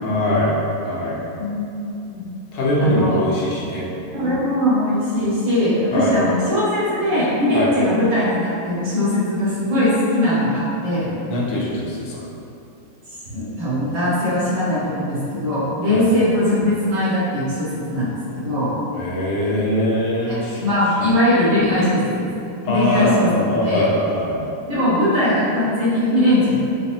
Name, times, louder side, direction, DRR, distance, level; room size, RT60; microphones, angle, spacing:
voice 1, 0.0-0.6 0.8-1.2 2.5-3.9 5.9-6.1 7.5-7.7 11.3-12.2 15.9-16.0 18.9-20.6 21.0-21.1 22.6-24.5, left 1 dB, 70° left, -5 dB, 1.4 m, -22 dB
voice 2, 1.4-2.3 2.8-3.2 4.1-11.1 13.2-18.7 20.3-22.3 22.6-23.3 23.5-23.8 24.7-26.6, left 1 dB, 80° right, -13 dB, 2.3 m, -20 dB
5.9 x 2.0 x 2.6 m, 2.7 s
omnidirectional pair, 2.2 m